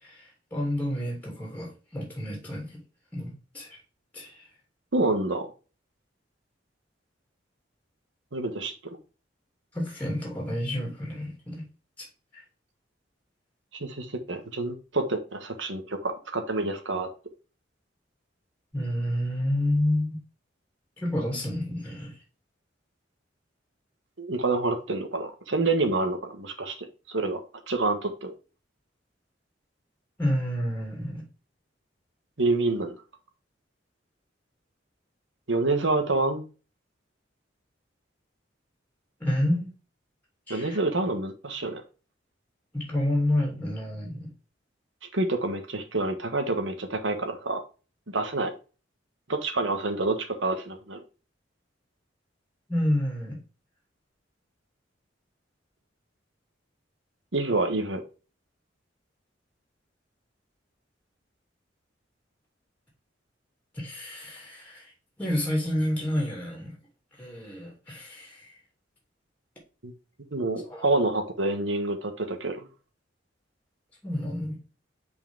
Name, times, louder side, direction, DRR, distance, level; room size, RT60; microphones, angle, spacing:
voice 1, 0.0-2.8 3.1-3.7 4.1-4.5 9.7-11.6 12.0-12.1 12.3-12.4 18.7-20.2 21.0-22.1 30.2-31.2 39.2-39.7 40.5-40.8 42.7-44.3 52.7-53.4 63.7-64.9 65.2-66.8 67.2-68.5 70.7-70.8 74.0-74.6, left 1 dB, 10° left, 2.8 m, -29 dB
voice 2, 4.9-5.5 8.3-8.7 13.7-17.1 24.2-27.4 27.7-28.3 32.4-33.0 35.5-36.4 40.5-41.8 45.1-47.6 48.1-48.5 49.3-51.0 57.3-58.0 69.8-69.9 70.3-72.7, right 2 dB, 80° right, 1.4 m, -27 dB
6.0 x 4.8 x 3.7 m
head